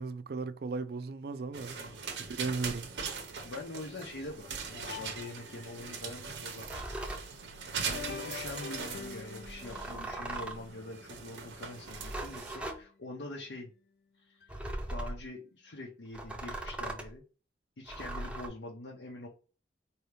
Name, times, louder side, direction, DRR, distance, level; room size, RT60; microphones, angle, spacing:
voice 1, 0.0-1.8 2.3-2.9, right 4 dB, 55° right, 0.4 m, -36 dB
sound 1, 1.5-12.6, right 5 dB, 80° right, 0.8 m, -41 dB
voice 2, 3.4-7.0 8.0-13.7 14.2-14.5 14.9-17.2 17.8-19.3, left 2 dB, 90° left, 0.8 m, -44 dB
sound 2, 4.8-5.9 7.7-12.1 12.6-12.7 13.5-13.6 14.4-14.5, left 6 dB, 60° left, 0.4 m, -47 dB
sound 3, 6.6-7.3 9.6-10.7 11.8-12.8 14.5-15.2 16.1-17.1 17.9-18.5, right 1 dB, 5° right, 0.5 m, -39 dB
4.6 x 2.7 x 3.3 m
head